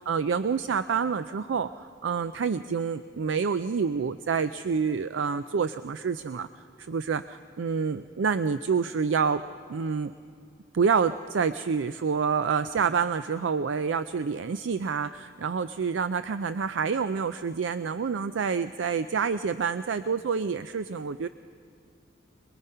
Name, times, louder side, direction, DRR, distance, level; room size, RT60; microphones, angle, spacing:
voice 1, 0.1-6.5 6.8-9.4 9.7-10.1 10.7-21.3, right 5 dB, 75° right, 12 dB, 0.4 m, -28 dB
26.0 x 21.0 x 5.6 m, 2.4 s
head